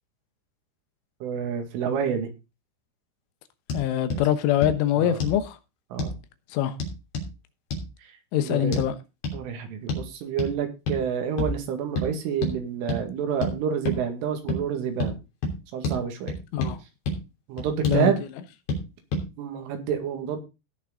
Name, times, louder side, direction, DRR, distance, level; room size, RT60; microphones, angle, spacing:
voice 1, 1.2-2.3 4.1-4.2 5.0-5.2 5.9-6.1 8.0-8.2 8.4-8.8 9.3-15.2 15.7-16.3 17.5-18.2 19.4-20.4, right 7 dB, 90° right, 4.6 m, -28 dB
voice 2, 3.7-5.6 6.5-6.7 8.3-9.0 16.5-16.8 17.9-18.1, left 11 dB, 85° left, 3.6 m, -24 dB
sound 1, 3.7-3.8 4.1-4.2 4.6-4.8 5.2-5.4 6.0-6.2 6.8-7.3 7.7-7.9 8.7-8.9 9.2-9.4 9.9-10.1 10.4-10.5 10.9-11.0 11.4-11.6 12.0-12.1 12.4-12.6 12.9-13.0 13.4-13.5 13.9-14.0 14.5-14.6 15.0-15.1 15.4-15.6 15.8-16.0 16.3-16.7 17.1-17.2 17.6-18.0 18.7-18.8 19.1-19.3, left 1 dB, 60° left, 4.9 m, -28 dB
17.5 x 6.4 x 3.9 m
omnidirectional pair, 5.5 m